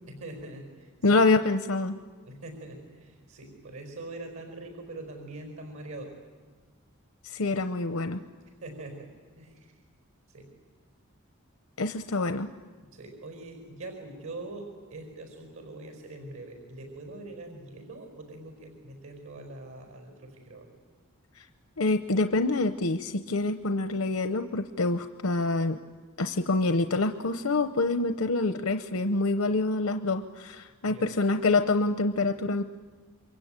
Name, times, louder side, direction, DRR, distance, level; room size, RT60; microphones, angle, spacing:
voice 1, 0.1-1.1 2.2-6.1 8.6-9.1 9.4-9.7 10.3-10.5 12.8-20.7 30.8-31.1, right 2 dB, 75° right, 4 dB, 5.0 m, -43 dB
voice 2, 1.0-2.0 7.2-8.2 11.8-12.5 21.3-21.5 21.8-25.8 26.2-32.6, left 3 dB, 85° left, 8 dB, 0.8 m, -26 dB
28.0 x 23.5 x 8.9 m, 1.5 s
head